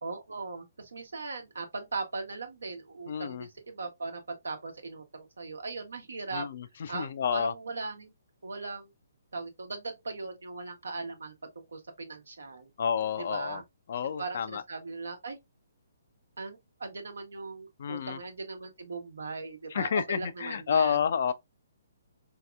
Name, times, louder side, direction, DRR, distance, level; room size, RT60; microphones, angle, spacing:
voice 1, 0.0-6.5 6.9-8.1 8.4-8.9 9.3-12.7 13.2-13.6 14.2-15.4 16.4-21.0, right 3 dB, 80° right, 1.0 m, -39 dB
voice 2, 3.1-3.5 6.3-7.5 12.8-13.6 13.9-14.6 17.8-18.2 19.7-21.3, left 7 dB, 55° left, 0.4 m, -30 dB
3.9 x 2.8 x 2.3 m
hypercardioid pair, 135°, 0 cm